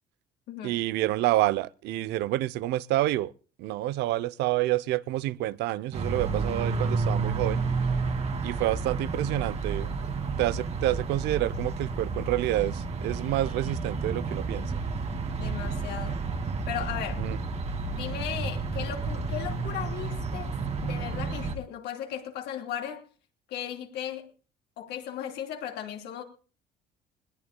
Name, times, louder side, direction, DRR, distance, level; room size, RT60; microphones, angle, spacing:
voice 1, 0.6-3.3 3.6-7.6 8.4-10.1 10.4-14.8 17.2-17.4, right 15 dB, 85° right, 0.6 m, -28 dB
sound 1, 5.9-21.6, right 4 dB, 40° right, 2.3 m, -31 dB
voice 2, 15.4-16.3 16.7-17.3 17.9-20.5 20.8-23.0 23.5-24.3 24.8-26.2, left 10 dB, 80° left, 2.9 m, -36 dB
21.0 x 19.0 x 2.2 m
cardioid pair, 110°, 17 cm